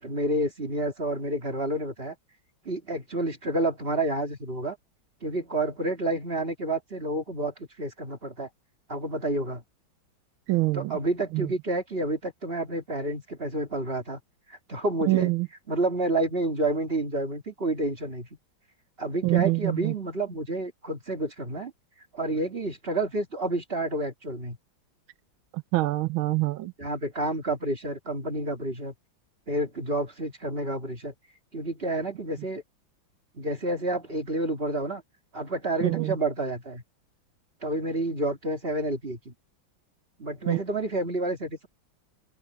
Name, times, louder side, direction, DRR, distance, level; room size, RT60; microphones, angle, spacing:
voice 1, 0.0-2.1 2.6-4.8 5.2-8.5 8.9-9.6 10.7-14.2 14.5-15.3 15.7-18.3 19.0-21.7 22.1-24.6 26.8-28.9 29.5-31.1 31.5-32.6 33.3-35.0 35.3-36.8 37.6-39.3 40.2-41.7, right 2 dB, 30° right, 2.6 m, -29 dB
voice 2, 10.5-11.0 11.3-11.5 15.1-15.5 19.2-19.9 25.7-26.7 35.8-36.1 40.5-40.6, right 21 dB, 90° right, 1.5 m, -25 dB
open air
omnidirectional pair, 2.2 m